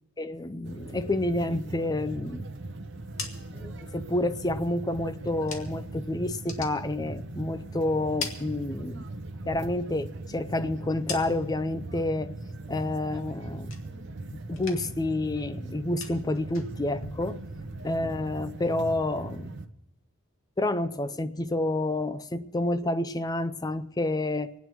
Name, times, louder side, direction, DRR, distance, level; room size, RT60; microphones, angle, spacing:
voice 1, 0.2-2.4 3.5-9.0 9.5-12.4 12.7-17.4 17.8-19.5 20.6-24.5, left 2 dB, 20° left, 0.4 m, -29 dB
sound 1, 0.6-19.7, right 2 dB, 55° right, 0.8 m, -39 dB
sound 2, 2.9-6.0 6.3-7.6 7.9-9.2 9.6-11.7 12.1-12.6 12.9-14.2 14.5-15.1 15.3-18.2, left 5 dB, 70° left, 1.8 m, -43 dB
25.5 x 9.3 x 4.6 m
head